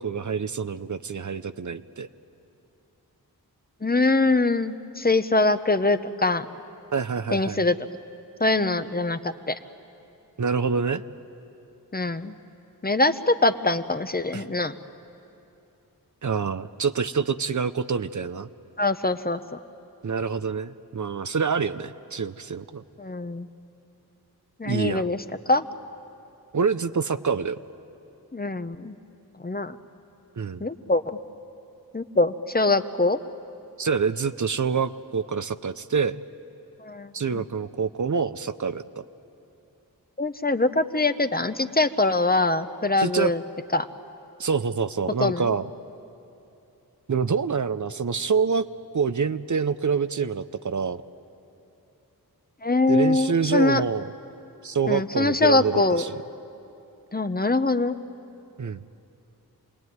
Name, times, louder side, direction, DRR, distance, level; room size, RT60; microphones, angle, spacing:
voice 1, 0.0-2.1 6.9-7.6 10.4-11.0 14.3-14.4 16.2-18.5 20.0-22.8 24.7-25.1 26.5-27.6 30.4-30.6 33.8-36.2 37.1-38.8 43.0-43.3 44.4-45.7 47.1-48.6 48.9-51.0 52.9-54.1 54.6-56.2 58.6-58.8, right 5 dB, 50° right, 12 dB, 0.7 m, -26 dB
voice 2, 3.8-6.5 7.3-7.8 8.4-9.6 11.9-12.4 12.8-14.8 18.8-19.6 23.0-23.5 24.6-25.7 28.3-29.0 29.4-29.8 30.6-31.2 31.9-33.2 36.8-37.4 40.2-43.4 43.7-43.9 45.2-45.5 52.6-53.8 54.9-56.0 57.1-58.0, left 2 dB, 25° left, 10 dB, 0.8 m, -23 dB
28.5 x 19.5 x 9.4 m, 2.8 s
wide cardioid pair, 55°, 37 cm